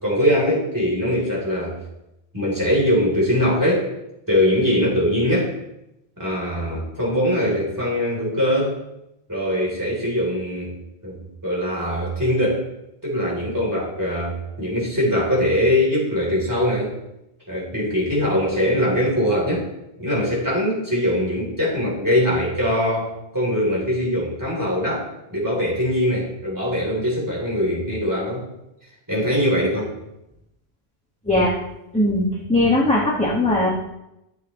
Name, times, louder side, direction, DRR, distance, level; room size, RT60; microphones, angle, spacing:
voice 1, 0.0-1.8 2.3-3.9 4.3-5.5 6.2-8.8 9.3-10.7 11.0-12.6 13.0-16.9 17.5-19.6 20.0-28.5 29.1-29.9, equal, 20° right, -4 dB, 3.5 m, -22 dB
voice 2, 31.9-33.7, left 1 dB, 5° left, -6 dB, 1.5 m, -19 dB
13.5 x 7.7 x 3.2 m, 0.88 s
omnidirectional pair, 1.1 m